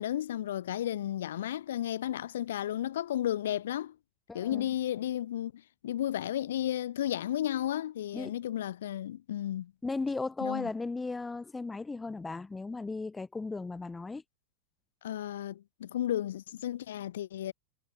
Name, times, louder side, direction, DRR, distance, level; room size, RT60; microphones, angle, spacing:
voice 1, 0.0-4.0 4.3-9.7 10.4-10.7 15.0-17.5, left 11 dB, 60° left, 0.6 m, -33 dB
voice 2, 4.3-4.7 8.1-8.4 9.8-14.2, left 3 dB, 10° left, 0.5 m, -36 dB
figure-of-eight pair, 90°, 0 cm